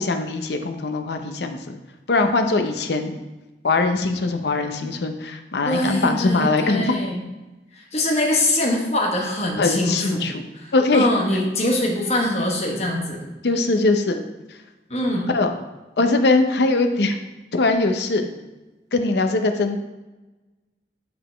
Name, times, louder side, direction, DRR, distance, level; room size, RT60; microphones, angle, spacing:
voice 1, 0.0-1.6 2.1-3.2 3.6-7.0 9.6-10.3 10.7-11.1 13.4-14.2 15.3-15.5 16.0-17.2 17.5-18.3 18.9-19.8, left 3 dB, 75° left, 6 dB, 0.6 m, -21 dB
voice 2, 5.6-7.2 7.7-10.3 10.5-13.2 14.9-15.3, left 1 dB, 35° left, 0 dB, 1.1 m, -23 dB
8.6 x 4.0 x 3.4 m, 1.1 s
head